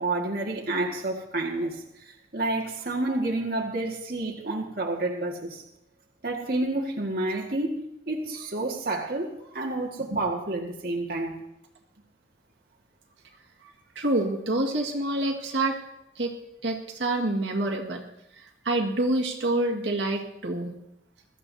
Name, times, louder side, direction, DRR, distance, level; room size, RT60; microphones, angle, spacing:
voice 1, 0.0-5.6 6.2-7.8 8.1-11.4, right 2 dB, 50° right, -1 dB, 1.8 m, -29 dB
voice 2, 14.0-15.8 16.2-16.3 16.6-18.0 18.3-20.7, right 2 dB, 75° right, 0 dB, 1.9 m, -27 dB
22.0 x 14.0 x 2.8 m, 0.82 s
head